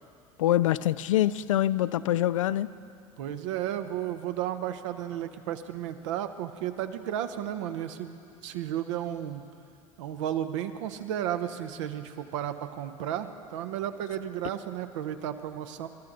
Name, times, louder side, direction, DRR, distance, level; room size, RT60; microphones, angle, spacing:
voice 1, 0.4-2.7, left 13 dB, 70° left, 16 dB, 0.4 m, -25 dB
voice 2, 3.2-9.4 10.0-15.9, right 10 dB, 65° right, 9 dB, 0.9 m, -33 dB
23.5 x 13.0 x 3.9 m, 2.4 s
figure-of-eight pair, 70°, 17 cm